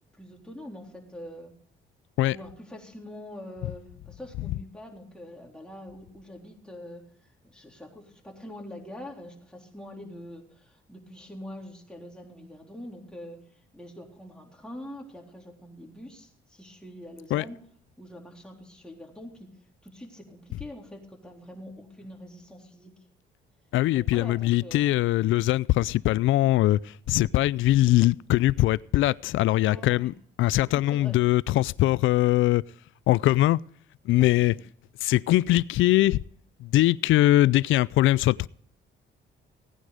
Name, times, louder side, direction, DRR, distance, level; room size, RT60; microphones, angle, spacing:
voice 1, 0.2-1.5 2.3-7.0 7.4-13.4 13.7-17.6 18.0-19.5 19.8-22.9 23.9-24.9 29.6-30.1 30.7-31.2, left 1 dB, 5° left, 3.7 m, -44 dB
voice 2, 23.7-30.1 30.4-32.6 33.1-33.6 34.1-34.6 35.0-36.2 36.6-38.5, left 16 dB, 80° left, 0.4 m, -22 dB
17.5 x 9.8 x 5.0 m
cardioid pair, 90°, 20 cm